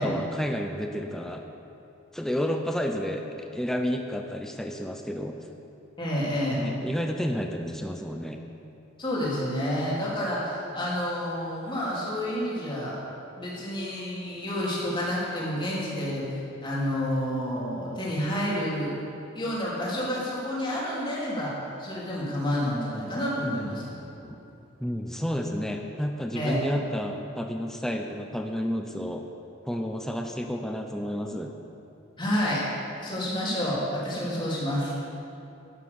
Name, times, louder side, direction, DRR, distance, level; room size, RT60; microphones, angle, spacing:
voice 1, 0.0-1.5 2.1-5.4 6.6-8.4 24.8-29.3 29.6-31.6, equal, ahead, 3 dB, 0.6 m, -31 dB
voice 2, 6.0-6.6 9.0-13.0 13.3-18.9 19.3-24.0 26.3-26.7 32.2-32.7 33.0-35.1, equal, 25° left, -7 dB, 3.2 m, -29 dB
11.5 x 9.5 x 7.0 m, 2.7 s
head